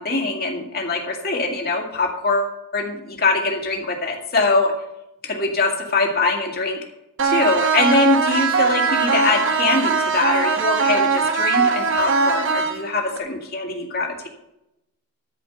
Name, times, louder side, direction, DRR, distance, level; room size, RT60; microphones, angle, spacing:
voice 1, 0.0-4.7 5.2-6.8 7.2-14.3, left 3 dB, 45° left, 1 dB, 2.2 m, -23 dB
sound 1, 7.2-13.2, right 5 dB, 60° right, 1.1 m, -20 dB
13.5 x 5.1 x 7.9 m, 0.88 s
head